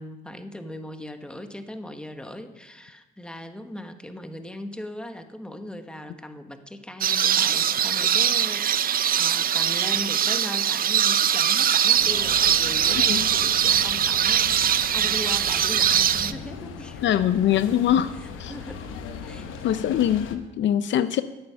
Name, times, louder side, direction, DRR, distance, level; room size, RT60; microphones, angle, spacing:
voice 1, 0.0-17.3 18.2-18.8 19.2-19.7, left 1 dB, 5° left, 7 dB, 1.2 m, -39 dB
sound 1, 7.0-16.3, right 9 dB, 45° right, 0.5 m, -22 dB
sound 2, 11.9-20.4, left 6 dB, 90° left, 1.0 m, -38 dB
voice 2, 17.0-18.1 18.4-18.5 19.6-21.2, left 10 dB, 70° left, 14 dB, 0.5 m, -22 dB
13.0 x 8.7 x 5.7 m, 1.1 s
cardioid pair, 90°, 20 cm